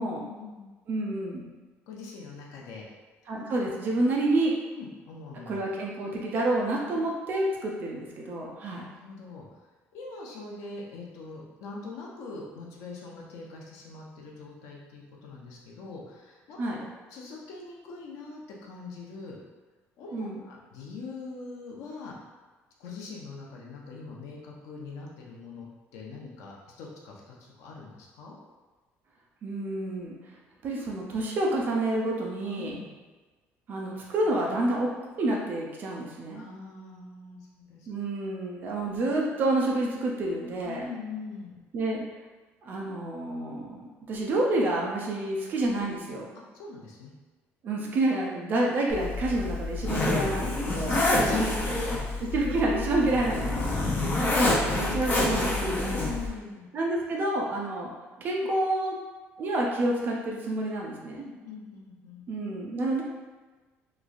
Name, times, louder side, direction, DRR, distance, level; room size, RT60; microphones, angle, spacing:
voice 1, 0.0-0.7 1.9-2.8 4.8-5.6 6.9-7.0 8.9-9.5 9.9-16.6 17.1-19.4 20.0-22.1 22.8-25.7 25.9-28.4 32.6-33.0 36.3-37.9 40.6-41.6 46.5-47.1 50.8-52.3 52.7-52.8 53.5-54.1 54.6-54.8 55.9-56.6 60.4-60.5 61.2-62.2, left 4 dB, 75° left, -2 dB, 0.6 m, -42 dB
voice 2, 0.9-1.5 3.3-4.5 5.5-8.9 16.6-16.8 20.1-20.4 29.4-30.1 30.6-32.7 33.7-34.9 35.2-36.4 37.9-40.8 41.7-42.0 42.6-46.3 47.6-50.9 52.3-53.6 54.7-56.0 56.7-57.9 58.2-59.0 59.4-61.2 62.3-63.0, right 2 dB, 35° right, -2 dB, 0.4 m, -28 dB
Zipper (clothing), 48.9-56.3, left 2 dB, 35° left, 0.6 m, -27 dB
3.0 x 2.3 x 2.5 m, 1.3 s
cardioid pair, 175°, 5 cm